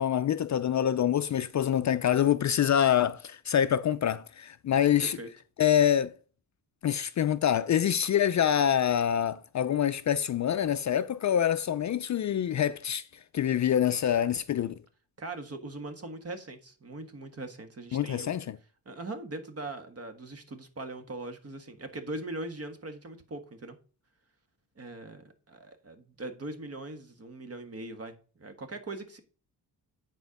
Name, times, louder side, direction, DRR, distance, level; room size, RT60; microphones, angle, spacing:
voice 1, 0.0-5.2 5.6-6.2 6.8-13.1 13.3-14.7 17.9-18.4, left 9 dB, 45° left, 0.4 m, -26 dB
voice 2, 15.2-18.4 18.9-23.8 24.8-29.2, right 2 dB, 35° right, 1.6 m, -41 dB
9.4 x 4.4 x 5.2 m
cardioid pair, 105°, 41 cm